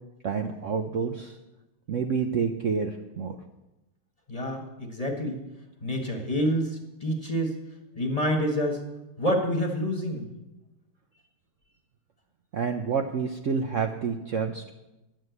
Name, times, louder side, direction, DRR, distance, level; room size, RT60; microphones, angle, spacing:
voice 1, 0.2-1.4 1.9-3.4 12.5-14.7, right 6 dB, 80° right, 4 dB, 0.6 m, -28 dB
voice 2, 4.3-5.4 5.8-7.6 8.0-8.8 9.2-10.2, equal, 20° left, 2 dB, 1.3 m, -27 dB
11.0 x 7.8 x 7.9 m, 0.99 s
omnidirectional pair, 2.3 m